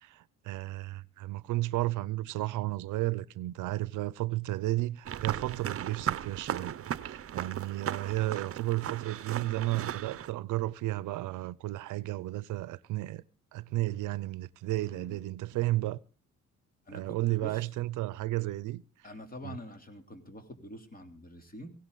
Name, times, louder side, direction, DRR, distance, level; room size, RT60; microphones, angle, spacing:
voice 1, 0.0-13.2 13.5-16.0 16.9-18.8 19.4-19.6, right 17 dB, 85° right, 0.6 m, -33 dB
sound 1, 5.0-10.3, right 10 dB, 50° right, 0.8 m, -36 dB
voice 2, 14.8-15.3 16.9-17.7 19.0-21.7, left 1 dB, 30° left, 3.3 m, -46 dB
17.5 x 16.5 x 3.9 m
cardioid pair, 90°, 30 cm